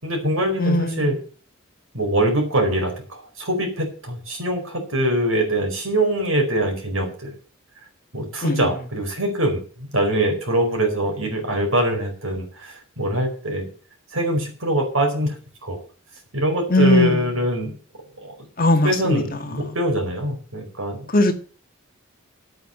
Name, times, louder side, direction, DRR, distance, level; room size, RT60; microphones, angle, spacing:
voice 1, 0.0-1.1 1.9-7.3 8.1-13.7 14.1-15.8 16.3-17.7 18.2-18.5 18.8-21.1, right 1 dB, 80° right, 3 dB, 4.6 m, -23 dB
voice 2, 0.6-1.1 8.4-8.7 16.7-17.3 18.6-19.2 19.7-19.8 21.1-21.3, left 1 dB, 45° left, 6 dB, 1.8 m, -19 dB
9.2 x 8.8 x 7.7 m, 0.40 s
head